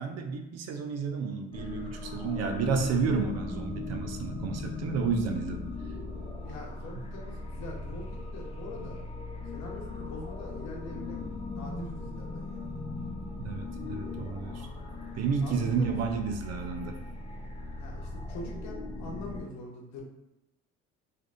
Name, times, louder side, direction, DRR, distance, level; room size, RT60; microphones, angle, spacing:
voice 1, 0.0-5.7 13.4-14.7 15.1-17.0, right 5 dB, 60° right, 5 dB, 0.6 m, -31 dB
sound 1, 1.5-19.4, left 3 dB, 20° left, 0.7 m, -39 dB
voice 2, 6.4-9.0 9.5-12.8 15.4-16.0 17.8-20.0, left 2 dB, 65° left, -1 dB, 1.0 m, -44 dB
3.2 x 2.5 x 2.5 m, 0.91 s
supercardioid pair, 70°, 30 cm